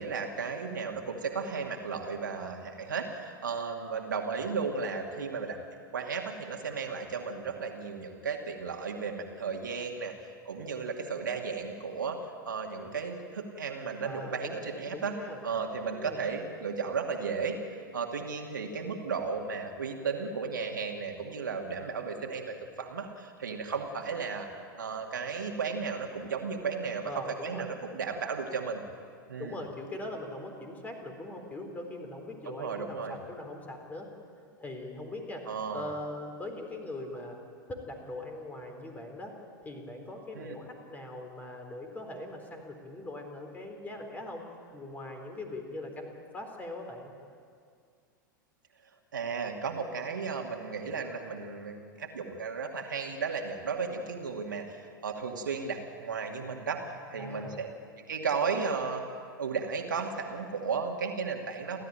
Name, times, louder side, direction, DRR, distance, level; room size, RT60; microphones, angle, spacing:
voice 1, 0.0-5.6 5.9-15.2 15.4-17.6 17.9-24.5 24.8-28.8 29.3-29.6 32.4-33.2 35.5-35.9 40.3-40.6 49.1-57.7 58.0-59.0 59.4-61.8, right 5 dB, 70° right, 2 dB, 2.4 m, -34 dB
voice 2, 14.0-14.7 14.9-15.4 16.0-16.2 27.0-27.7 29.4-34.1 34.6-35.4 35.7-39.3 39.6-44.4 44.7-47.1 57.2-57.6, left 1 dB, 15° left, 4 dB, 3.9 m, -41 dB
30.0 x 13.0 x 9.0 m, 2.2 s
figure-of-eight pair, 90°, 11 cm